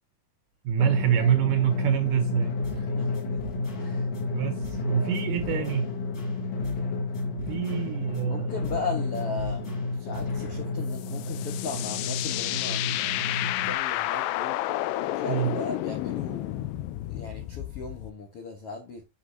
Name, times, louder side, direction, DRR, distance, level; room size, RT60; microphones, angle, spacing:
voice 1, 0.6-2.5 4.3-5.9 7.5-8.5 15.3-15.5, right 11 dB, 75° right, 2.0 m, -26 dB
Drum, 0.8-13.8, left 3 dB, 55° left, 2.1 m, -31 dB
sound 1, 2.6-2.9 3.1-4.2 4.6-4.9 5.1-6.9 7.1-8.2 8.6-8.9 9.1-10.6, equal, 35° left, 1.7 m, -46 dB
voice 2, 2.7-3.4 3.8-4.1 5.0-5.8 8.3-14.6 14.9-16.7 17.0-19.0, left 4 dB, 70° left, 1.3 m, -38 dB
sound 2, 10.9-18.1, left 15 dB, 85° left, 2.0 m, -31 dB
8.3 x 6.0 x 2.7 m
omnidirectional pair, 4.6 m